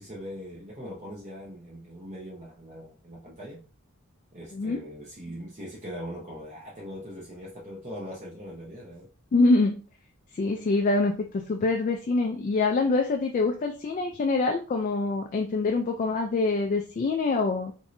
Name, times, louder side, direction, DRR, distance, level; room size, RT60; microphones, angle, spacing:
voice 1, 0.0-3.6 4.3-9.1, equal, 30° right, -4 dB, 0.7 m, -41 dB
voice 2, 4.5-4.8 9.3-9.8 10.3-17.7, left 3 dB, 35° left, 3 dB, 0.3 m, -25 dB
3.0 x 2.7 x 2.5 m, 0.36 s
head